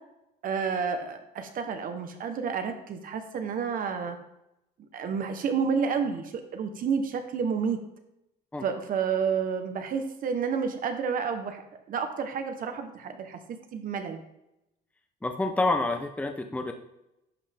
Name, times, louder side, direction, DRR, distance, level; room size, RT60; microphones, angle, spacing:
voice 1, 0.4-4.2 4.9-7.8 8.6-11.6 11.9-13.4 13.7-14.2, right 6 dB, 55° right, 7 dB, 1.1 m, -30 dB
voice 2, 15.2-16.7, left 2 dB, 10° left, 5 dB, 0.7 m, -28 dB
11.5 x 5.4 x 3.5 m, 0.88 s
cardioid pair, 110°, 17 cm